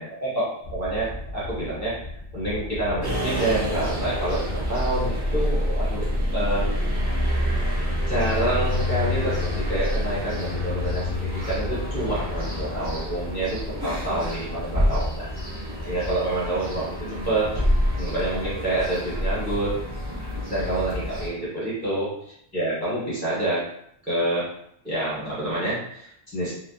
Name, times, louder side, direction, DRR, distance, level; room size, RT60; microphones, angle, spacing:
voice 1, 0.0-2.0 2.3-7.0 8.1-15.3 15.9-17.6 17.9-19.7 20.5-22.1 22.5-23.6 24.1-24.5 24.8-26.5, right 1 dB, 10° left, -9 dB, 0.9 m, -27 dB
sound 1, 0.6-12.7, left 1 dB, 60° left, 0.8 m, -37 dB
sound 2, 3.0-21.3, left 1 dB, 30° right, 0.5 m, -27 dB
2.7 x 2.1 x 2.3 m, 0.72 s
omnidirectional pair, 1.0 m